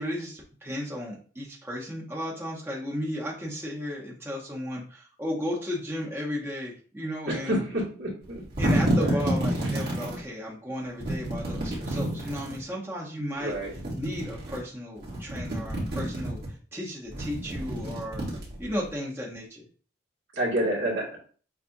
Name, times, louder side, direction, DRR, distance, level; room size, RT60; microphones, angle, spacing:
voice 1, 0.0-7.6 8.6-13.6 14.0-18.3 18.6-19.6, equal, 10° right, -4 dB, 1.0 m, -34 dB
voice 2, 7.3-8.4 8.9-9.2 13.4-13.7 20.3-21.2, right 1 dB, 70° right, -4 dB, 1.8 m, -28 dB
sound 1, 8.2-10.2 11.0-12.6 13.5-14.6 15.0-16.5 17.1-18.9, right 1 dB, 55° right, 1.9 m, -29 dB
6.9 x 2.4 x 2.7 m, 0.42 s
head